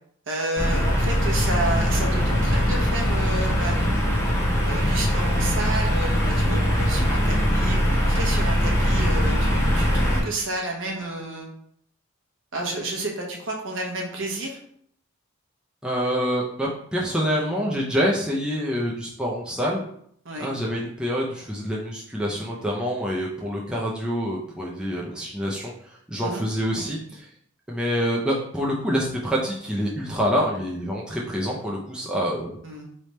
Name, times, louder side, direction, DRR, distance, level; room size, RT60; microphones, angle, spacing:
voice 1, 0.3-4.3 4.6-11.5 12.5-14.6 20.2-20.5 26.2-26.4 32.6-32.9, right 2 dB, 60° right, 0 dB, 0.9 m, -31 dB
sound 1, 0.6-10.2, equal, 15° left, 1.2 m, -21 dB
voice 2, 15.8-19.8 20.4-27.3 27.7-32.6, equal, 5° right, -4 dB, 0.4 m, -26 dB
3.3 x 3.0 x 4.2 m, 0.67 s
head